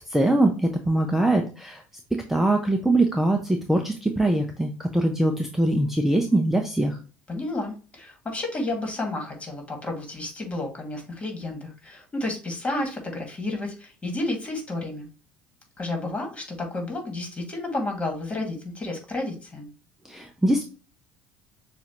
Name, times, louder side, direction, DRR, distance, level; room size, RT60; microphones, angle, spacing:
voice 1, 0.1-1.8 2.3-7.0 20.0-20.6, right 1 dB, 5° right, 4 dB, 0.7 m, -22 dB
voice 2, 7.3-15.1 15.8-19.7, left 2 dB, 25° left, 2 dB, 2.0 m, -31 dB
6.8 x 2.6 x 2.9 m, 0.36 s
hypercardioid pair, 70°, 5 cm